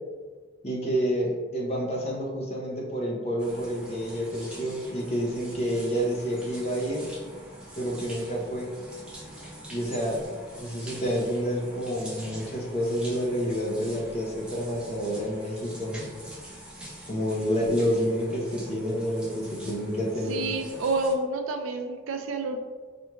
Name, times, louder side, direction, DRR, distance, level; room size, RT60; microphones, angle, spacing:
voice 1, 0.6-7.0 7.8-8.7 9.7-10.3 10.6-16.1 17.1-20.4, equal, 30° left, -3 dB, 0.7 m, -29 dB
sound 1, 3.4-21.1, right 1 dB, 5° right, 0.6 m, -44 dB
voice 2, 20.3-22.6, right 2 dB, 90° right, 6 dB, 0.4 m, -29 dB
4.2 x 3.0 x 2.3 m, 1.5 s
head